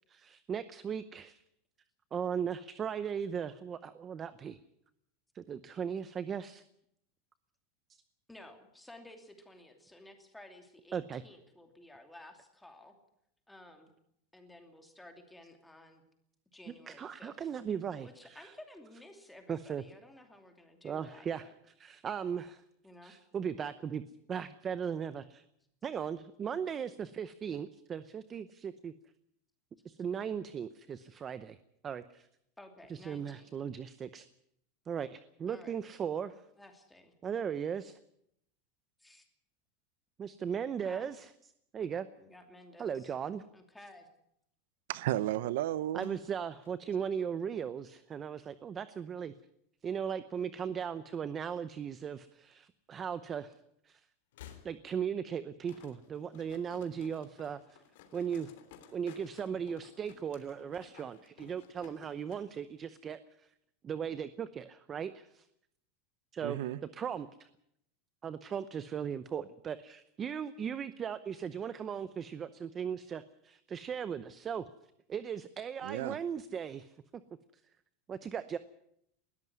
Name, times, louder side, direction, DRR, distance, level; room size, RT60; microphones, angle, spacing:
voice 1, 0.1-1.4 2.1-4.6 5.3-6.6 10.9-11.2 16.9-18.5 19.5-19.8 20.8-21.4 21.8-22.6 23.0-24.0 24.3-25.4 25.8-28.9 29.8-31.6 31.8-32.3 32.9-34.3 34.9-36.4 37.2-38.0 40.2-41.3 41.7-42.1 42.8-43.4 45.9-49.3 49.8-53.5 53.8-54.0 54.6-57.8 58.1-58.5 58.9-63.5 63.8-65.5 66.3-66.6 66.9-67.5 68.2-74.6 75.1-76.9 78.1-78.6, right 7 dB, 20° right, 0.7 m, -37 dB
voice 2, 8.3-12.9 13.5-13.9 14.3-16.0 16.5-17.6 18.0-21.5 22.8-23.1 32.6-33.5 35.5-35.8 36.6-37.1 39.0-39.3 40.8-41.1 42.2-43.1 43.5-44.1, left 1 dB, 5° left, 2.7 m, -54 dB
voice 3, 44.9-46.2 66.4-66.8 75.8-76.2, right 13 dB, 70° right, 0.8 m, -33 dB
sound 1, 45.9-48.3 48.6-49.2 50.2-51.2 51.5-51.6 52.7-52.8 54.2-55.2, left 10 dB, 90° left, 4.3 m, -57 dB
sound 2, 55.7-62.4 62.8-62.9, left 9 dB, 65° left, 3.2 m, -57 dB
20.5 x 13.5 x 9.5 m
supercardioid pair, 160°, 0 cm